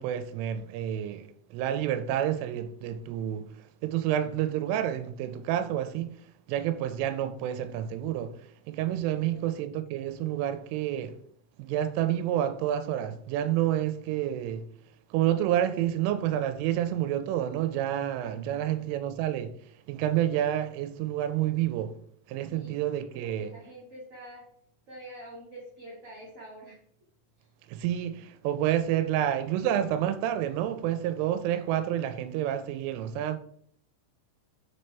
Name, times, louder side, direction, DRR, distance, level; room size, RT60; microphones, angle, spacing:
voice 1, 0.0-6.2 6.5-11.2 11.6-14.7 15.1-19.6 19.9-22.0 22.3-23.5 27.7-33.4, right 11 dB, 90° right, 3.1 m, -29 dB
voice 2, 9.1-9.5 18.4-18.8 22.4-22.8 23.1-24.4 24.9-26.8 27.4-27.5, right 1 dB, 55° right, 1.7 m, -47 dB
6.8 x 4.2 x 3.3 m
omnidirectional pair, 5.6 m